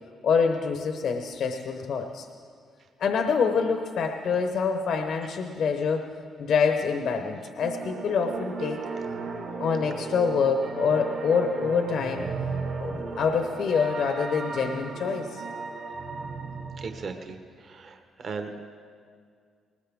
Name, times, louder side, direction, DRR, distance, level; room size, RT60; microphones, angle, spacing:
voice 1, 0.2-2.3 3.0-6.1 6.4-8.9 9.6-12.3 12.8-15.4, left 5 dB, 70° left, 5 dB, 0.9 m, -26 dB
sound 1, 7.6-17.1, right 4 dB, 80° right, 3.0 m, -35 dB
voice 2, 16.8-18.7, right 4 dB, 50° right, 6 dB, 1.1 m, -37 dB
20.0 x 19.5 x 3.6 m, 2.1 s
cardioid pair, 90°, 0 cm